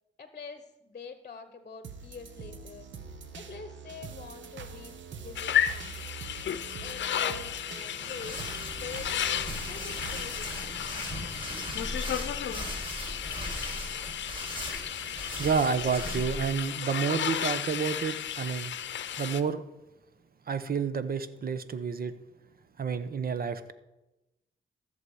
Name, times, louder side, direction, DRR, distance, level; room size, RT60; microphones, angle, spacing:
voice 1, 0.2-2.9 3.3-6.1 6.8-8.4 8.7-10.9, left 5 dB, 40° left, 9 dB, 1.0 m, -45 dB
sound 1, 1.8-11.9 12.3-12.4, right 5 dB, 80° right, 1.1 m, -44 dB
sound 2, 5.3-19.4, left 10 dB, 75° left, 0.7 m, -33 dB
sound 3, 7.9-16.5, equal, 25° right, 4.4 m, -39 dB
voice 2, 15.4-18.7 19.2-19.6 20.5-22.2 22.8-23.7, right 6 dB, 55° right, 13 dB, 0.9 m, -29 dB
14.0 x 7.0 x 4.9 m, 0.98 s
cardioid pair, 65°, 19 cm